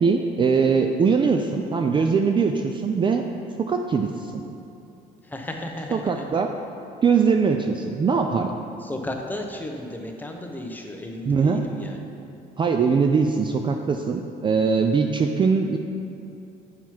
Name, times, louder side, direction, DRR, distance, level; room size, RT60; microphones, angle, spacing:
voice 1, 0.0-3.2 3.6-4.4 5.9-6.5 7.0-8.5 11.3-11.6 12.6-15.8, right 5 dB, 30° right, 4 dB, 0.4 m, -21 dB
voice 2, 5.3-6.2 8.8-12.0, left 1 dB, 10° left, 2 dB, 0.8 m, -34 dB
7.5 x 5.7 x 4.6 m, 2.6 s
cardioid pair, 110°, 17 cm